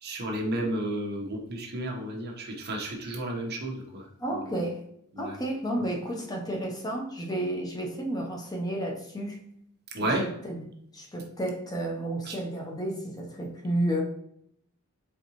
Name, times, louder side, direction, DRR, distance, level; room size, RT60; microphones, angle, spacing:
voice 1, 0.0-4.0 4.3-4.5 5.1-5.3 9.9-10.2 12.3-12.4, right 1 dB, 50° right, 0 dB, 0.9 m, -32 dB
voice 2, 4.2-4.9 5.2-9.4 10.0-10.6 10.9-14.0, right 1 dB, 20° left, 0 dB, 0.6 m, -32 dB
4.2 x 3.7 x 2.9 m, 0.72 s
head